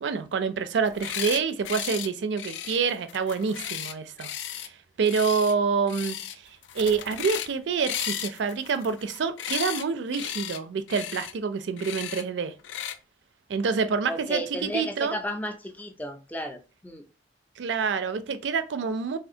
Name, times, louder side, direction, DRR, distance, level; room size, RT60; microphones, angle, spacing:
voice 1, 0.0-6.5 6.7-12.5 13.5-15.2 17.6-19.2, right 5 dB, 80° right, 0.4 m, -27 dB
sound 1, 0.8-1.4 1.7-2.1 2.4-4.7 5.0-5.5 5.9-6.4 6.6-7.5 7.8-9.8 10.1-10.6 10.9-11.3 11.8-12.2 12.6-13.0, left 10 dB, 90° left, 0.3 m, -35 dB
voice 2, 14.1-17.0, equal, 10° left, 0.4 m, -34 dB
3.3 x 2.4 x 2.7 m
head